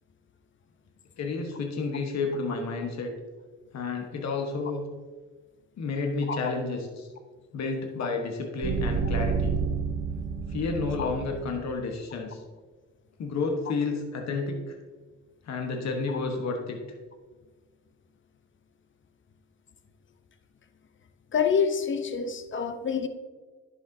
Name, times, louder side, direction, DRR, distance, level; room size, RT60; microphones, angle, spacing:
voice 1, 1.2-3.1 3.7-4.9 5.8-7.1 7.5-9.6 10.5-12.4 13.2-14.8 15.4-16.8, left 3 dB, 60° left, 2 dB, 1.2 m, -31 dB
sound 1, 8.6-11.8, right 5 dB, 35° right, 0.5 m, -30 dB
voice 2, 21.3-23.1, left 6 dB, 40° left, 9 dB, 0.8 m, -27 dB
10.5 x 6.4 x 2.7 m, 1.4 s
cardioid pair, 90°, 30 cm